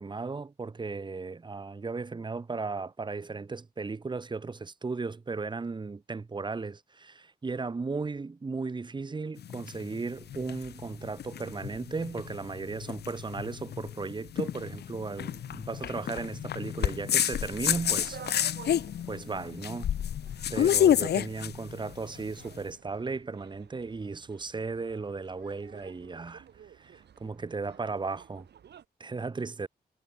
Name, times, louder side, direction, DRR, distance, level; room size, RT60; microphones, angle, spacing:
voice 1, 0.0-18.2 19.1-19.9 20.5-26.4 26.7-28.5 29.0-29.7, right 4 dB, 25° right, 1.0 m, -36 dB
sound 1, 9.4-22.6, left 10 dB, 75° left, 0.5 m, -30 dB
sound 2, 17.5-28.9, right 9 dB, 90° right, 1.3 m, -52 dB
wide cardioid pair, 140°, 17 cm